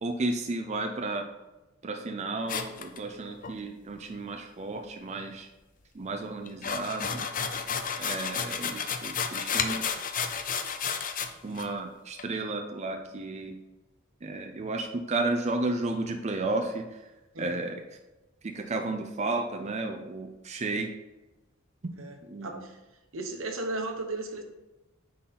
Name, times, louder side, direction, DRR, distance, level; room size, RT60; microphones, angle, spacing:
voice 1, 0.0-1.3 1.8-5.5 5.9-7.3 8.0-9.9 11.4-13.6 14.2-17.0 17.4-17.8 18.4-20.9 21.8-21.9 22.2-22.6, right 2 dB, 35° right, 4 dB, 0.5 m, -33 dB
sound 1, 2.5-3.5 6.5-11.3 11.6-11.7 12.2-12.3, left 6 dB, 40° left, 0.6 m, -31 dB
voice 2, 22.0-22.8 23.1-24.4, right 2 dB, 80° right, 4 dB, 1.0 m, -35 dB
9.5 x 3.9 x 4.2 m, 1.1 s
head